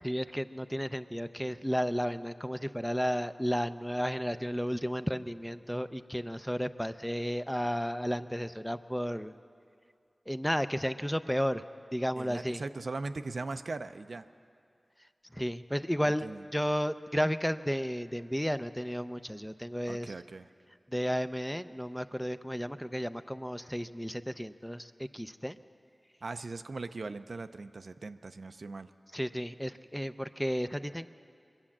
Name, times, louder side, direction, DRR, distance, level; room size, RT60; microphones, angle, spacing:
voice 1, 0.0-9.3 10.3-11.6 11.9-12.6 15.3-20.1 20.9-25.6 29.1-31.1, equal, 5° left, 11 dB, 0.4 m, -33 dB
voice 2, 12.2-14.3 16.0-16.4 19.9-20.5 26.2-28.9, right 3 dB, 70° right, 10 dB, 0.4 m, -39 dB
23.0 x 8.7 x 7.2 m, 2.4 s
wide cardioid pair, 65°, 0 cm